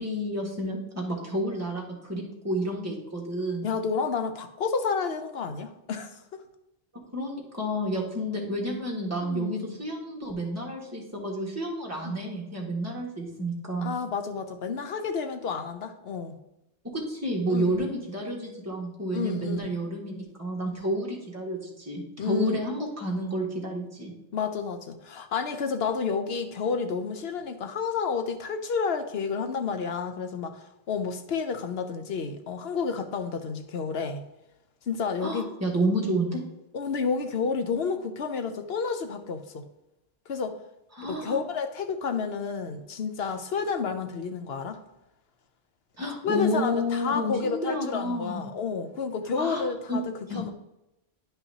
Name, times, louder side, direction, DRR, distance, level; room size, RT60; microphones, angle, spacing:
voice 1, 0.0-3.7 7.1-13.9 16.8-24.1 35.2-36.4 40.9-41.4 46.0-48.4 49.4-49.6 49.9-50.0 50.3-50.4, equal, 15° right, -3 dB, 1.6 m, -30 dB
voice 2, 3.6-6.4 9.2-9.8 12.0-12.2 13.8-16.4 17.5-17.9 19.1-19.6 22.2-22.6 24.3-30.6 30.9-34.2 34.9-35.5 36.7-39.6 40.3-40.6 41.0-44.8 46.2-50.5, left 5 dB, 75° left, 7 dB, 1.0 m, -30 dB
10.0 x 5.6 x 2.8 m, 0.90 s
omnidirectional pair, 1.1 m